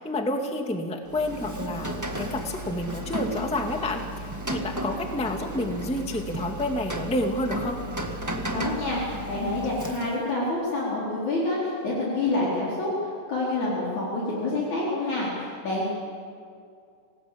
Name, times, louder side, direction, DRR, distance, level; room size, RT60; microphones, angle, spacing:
voice 1, 0.0-4.0 4.5-7.8, left 1 dB, 5° left, 3 dB, 1.3 m, -29 dB
Rain, 1.1-10.3, right 1 dB, 20° right, 0.5 m, -34 dB
voice 2, 8.5-15.9, left 2 dB, 60° left, -6 dB, 5.7 m, -27 dB
27.0 x 18.5 x 8.6 m, 2.3 s
omnidirectional pair, 3.8 m